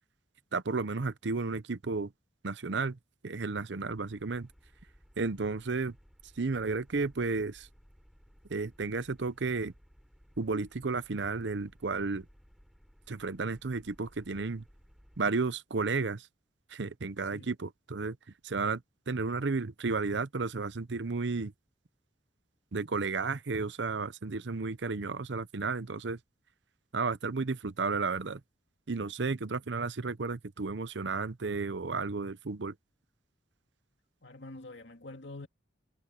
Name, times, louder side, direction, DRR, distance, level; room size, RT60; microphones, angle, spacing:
voice 1, 0.5-2.1 2.4-3.0 3.2-4.5 5.2-6.0 6.4-7.7 8.5-9.7 10.4-12.3 13.1-14.6 15.2-16.3 16.7-18.2 18.4-21.5 22.7-26.2 26.9-28.4 28.9-32.7, right 4 dB, 75° right, 0.8 m, -33 dB
sound 1, 3.9-15.3, equal, ahead, 6.0 m, -60 dB
voice 2, 34.2-35.5, left 2 dB, 75° left, 2.5 m, -46 dB
head